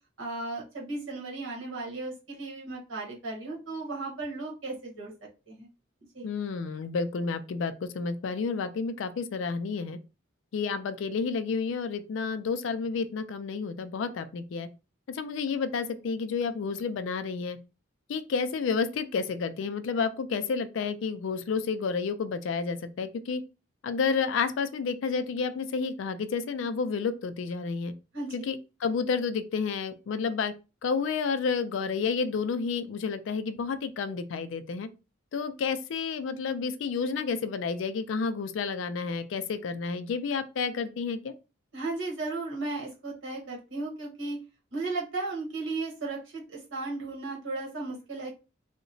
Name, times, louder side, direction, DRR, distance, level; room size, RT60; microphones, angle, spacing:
voice 1, 0.2-5.1 5.5-5.7 6.1-6.3 28.1-28.3 41.7-44.4 44.7-48.3, right 3 dB, 80° right, 1.1 m, -35 dB
voice 2, 6.2-10.0 10.5-14.7 15.1-17.6 18.1-23.4 23.8-27.9 28.3-30.5 30.8-34.9 35.3-41.3, left 5 dB, 70° left, 0.3 m, -30 dB
2.8 x 2.1 x 2.6 m
head